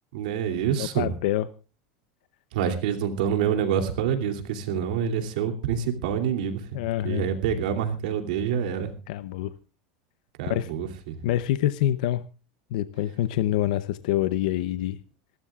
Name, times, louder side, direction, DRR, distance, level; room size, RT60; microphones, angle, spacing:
voice 1, 0.1-1.2 2.5-8.9 10.4-10.9, right 8 dB, 75° right, 6 dB, 2.9 m, -27 dB
voice 2, 0.8-1.5 6.7-7.3 9.1-9.5 10.5-10.7 11.2-12.2 12.7-15.0, left 13 dB, 70° left, 14 dB, 0.7 m, -26 dB
27.0 x 13.0 x 2.4 m, 0.32 s
supercardioid pair, 165°, 4 cm